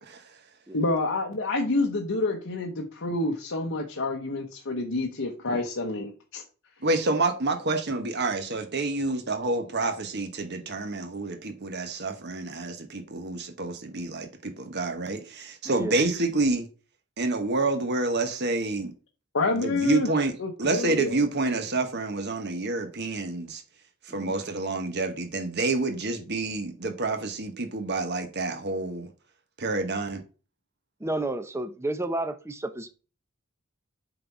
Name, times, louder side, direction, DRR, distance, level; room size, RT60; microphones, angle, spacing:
voice 1, 0.7-6.4 19.3-20.1 20.4-21.2, left 2 dB, 60° left, 0.9 m, -28 dB
voice 2, 6.8-16.7 17.2-18.9 19.5-20.3 20.6-23.6 24.1-29.1 29.6-30.2, right 3 dB, 50° right, 1.2 m, -28 dB
voice 3, 15.6-16.0 24.1-24.3 31.0-32.9, right 1 dB, 10° right, 0.6 m, -31 dB
7.7 x 4.0 x 4.6 m
head